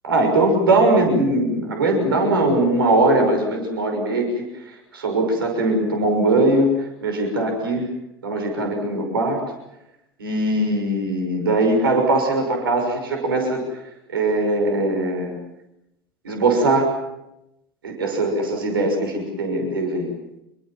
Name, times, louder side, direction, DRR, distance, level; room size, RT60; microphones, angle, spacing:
voice 1, 0.0-4.4 4.9-6.7 7.0-7.8 8.2-9.4 10.2-13.6 14.1-15.4 16.2-16.9 17.8-20.1, right 2 dB, 75° right, 3 dB, 6.3 m, -20 dB
27.0 x 22.5 x 7.5 m, 0.88 s
figure-of-eight pair, 80°, 12 cm